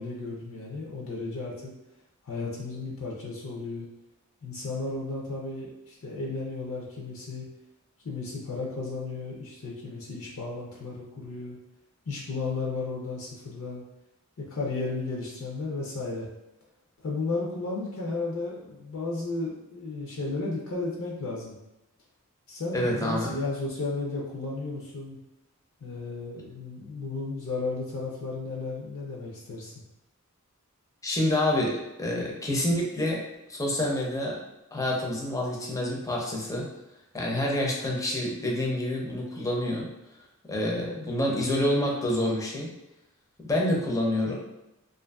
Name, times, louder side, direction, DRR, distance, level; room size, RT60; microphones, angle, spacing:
voice 1, 0.0-1.7 2.2-3.9 4.4-7.4 8.0-11.6 12.1-13.8 14.4-16.3 17.0-21.6 22.5-25.2 25.8-29.7, left 3 dB, 65° left, -3 dB, 0.5 m, -34 dB
voice 2, 22.7-23.4 31.0-33.2 33.5-34.4 34.7-36.7 37.1-39.9 40.5-42.7 43.4-44.4, left 1 dB, 15° left, -2 dB, 0.5 m, -27 dB
2.5 x 2.5 x 2.3 m, 0.93 s
head